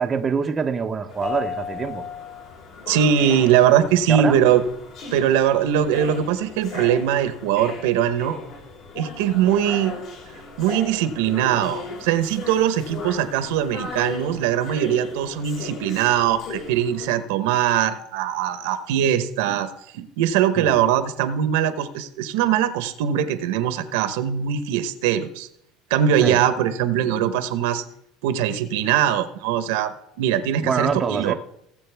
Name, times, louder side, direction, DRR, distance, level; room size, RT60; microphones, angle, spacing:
voice 1, 0.0-2.0 4.1-4.4 20.6-20.8 26.2-26.4 30.6-31.3, right 6 dB, 20° right, 0.6 m, -25 dB
sound 1, 1.1-17.1, left 4 dB, 55° left, 2.6 m, -36 dB
voice 2, 2.9-4.6 5.1-8.4 8.9-10.0 10.6-25.5 25.9-27.8 28.2-29.9 30.2-31.3, right 10 dB, 90° right, 1.0 m, -21 dB
17.5 x 7.7 x 3.5 m
cardioid pair, 150°, 0 cm